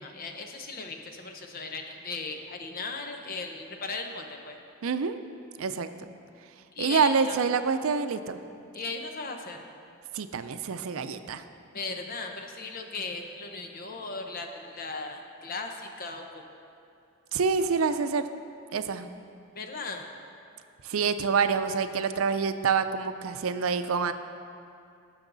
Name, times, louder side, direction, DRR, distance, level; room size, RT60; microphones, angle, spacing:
voice 1, 0.0-4.6 6.7-7.4 8.7-9.7 11.7-16.4 19.5-20.1, left 3 dB, 45° left, 4 dB, 0.9 m, -37 dB
voice 2, 4.8-5.2 5.6-6.1 6.8-8.4 10.1-11.4 17.3-18.2 18.7-19.1 20.8-24.1, right 5 dB, 85° right, 10 dB, 0.5 m, -27 dB
17.5 x 6.4 x 4.0 m, 2.5 s
head